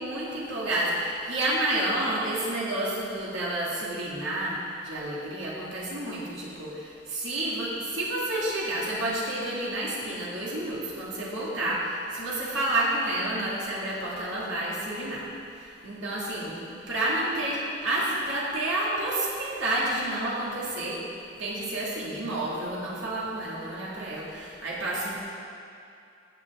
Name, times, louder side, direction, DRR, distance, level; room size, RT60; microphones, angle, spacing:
voice 1, 0.0-15.3 15.5-21.0 21.3-25.2, right 1 dB, 75° right, -6 dB, 2.2 m, -30 dB
15.0 x 7.0 x 3.6 m, 2.5 s
head